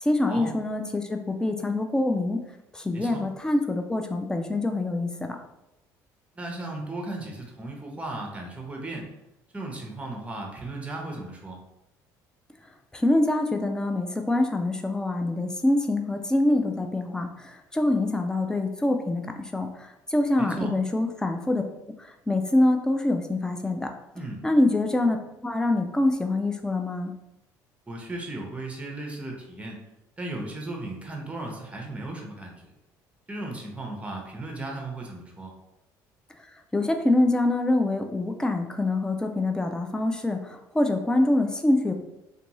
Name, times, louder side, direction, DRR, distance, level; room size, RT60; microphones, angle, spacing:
voice 1, 0.0-2.4 2.7-5.1 12.9-17.3 17.7-19.2 19.5-19.7 20.1-21.6 22.3-23.9 24.4-25.2 25.4-27.1 36.7-41.9, left 2 dB, 10° left, 4 dB, 0.4 m, -25 dB
voice 2, 2.9-3.2 6.4-9.1 9.5-11.6 20.4-20.7 24.1-24.4 27.9-29.8 30.2-32.6 33.3-35.5, right 2 dB, 15° right, 1 dB, 0.7 m, -36 dB
2.5 x 2.3 x 2.9 m, 0.90 s
supercardioid pair, 80°, 8 cm